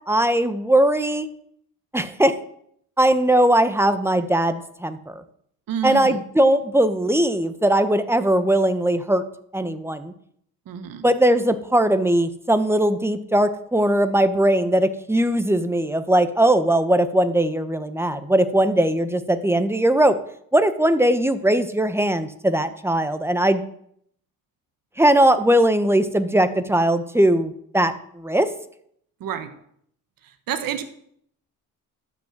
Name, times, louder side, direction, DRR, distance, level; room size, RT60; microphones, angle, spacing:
voice 1, 0.1-1.3 1.9-2.3 3.0-5.2 5.8-9.2 9.5-10.1 11.0-20.2 20.5-23.6 25.0-28.5, right 1 dB, 5° right, 10 dB, 1.2 m, -19 dB
voice 2, 5.7-6.2 10.7-11.1 29.2-29.5 30.5-30.8, right 8 dB, 70° right, 8 dB, 1.4 m, -28 dB
12.5 x 6.5 x 7.5 m, 0.68 s
cardioid pair, 80°, 36 cm